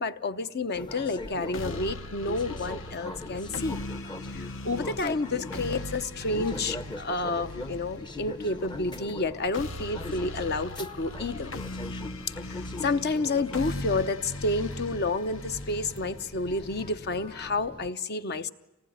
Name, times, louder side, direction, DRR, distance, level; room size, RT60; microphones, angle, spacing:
voice 1, 0.0-3.8 4.3-11.5 12.5-18.5, left 3 dB, 55° left, 11 dB, 0.9 m, -30 dB
sound 1, 0.7-17.9, left 2 dB, 25° left, 0.8 m, -41 dB
sound 2, 1.5-17.5, left 2 dB, 70° left, 1.2 m, -40 dB
26.5 x 19.5 x 9.4 m, 1.1 s
head